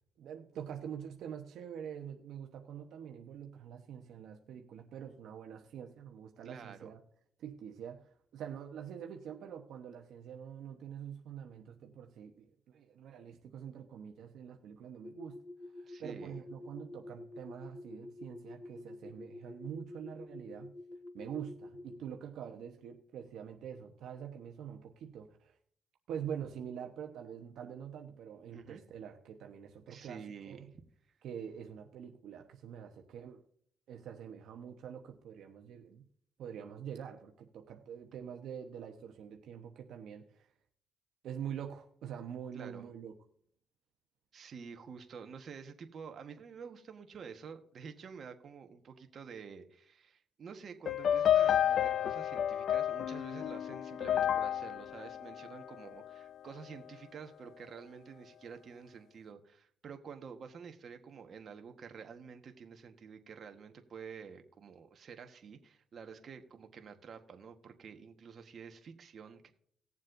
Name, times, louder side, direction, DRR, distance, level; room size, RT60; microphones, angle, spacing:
voice 1, 0.2-7.0 7.4-15.4 15.8-20.7 21.1-25.6 26.1-30.2 30.5-30.7 31.2-33.4 33.9-36.0 36.4-40.5 41.2-43.1, right 8 dB, 75° right, 3 dB, 1.0 m, -45 dB
voice 2, 6.4-6.9 15.9-16.4 28.5-28.8 29.9-30.7 42.5-42.9 44.3-69.5, right 6 dB, 55° right, 6 dB, 1.3 m, -49 dB
sound 1, 15.0-22.1, left 2 dB, 10° left, 0.7 m, -49 dB
sound 2, 50.9-56.2, left 10 dB, 65° left, 0.3 m, -31 dB
19.0 x 7.3 x 2.6 m, 0.62 s
cardioid pair, 90°, 0 cm